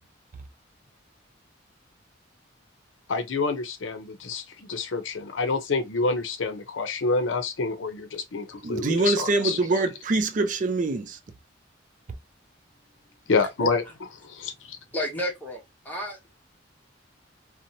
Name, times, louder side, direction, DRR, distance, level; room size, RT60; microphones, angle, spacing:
voice 1, 3.1-9.6 13.3-13.8 14.2-14.8, left 4 dB, 80° left, 0.6 m, -27 dB
voice 2, 8.6-11.2, right 3 dB, 40° right, 0.4 m, -24 dB
voice 3, 14.9-16.4, equal, 10° left, 0.8 m, -32 dB
2.7 x 2.1 x 2.6 m
head